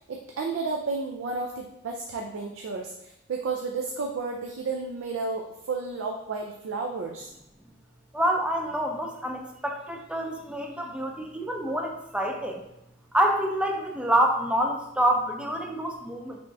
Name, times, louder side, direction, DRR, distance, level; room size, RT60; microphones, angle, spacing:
voice 1, 0.0-7.3, right 4 dB, 80° right, 2 dB, 0.4 m, -32 dB
voice 2, 8.1-12.6 13.1-16.4, right 1 dB, 5° right, 2 dB, 0.4 m, -27 dB
4.1 x 3.4 x 2.6 m, 0.83 s
head